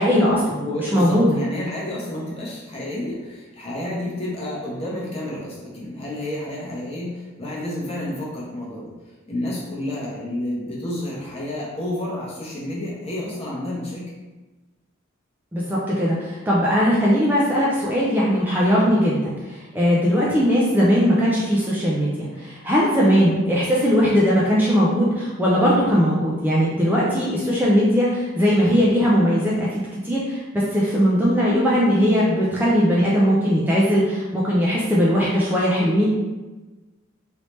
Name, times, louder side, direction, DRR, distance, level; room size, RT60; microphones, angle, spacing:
voice 1, 0.0-1.4 15.5-36.1, equal, 10° right, -6 dB, 0.4 m, -19 dB
voice 2, 0.6-8.9 9.3-14.0, left 1 dB, 30° left, -5 dB, 0.9 m, -30 dB
3.2 x 2.8 x 3.0 m, 1.2 s
head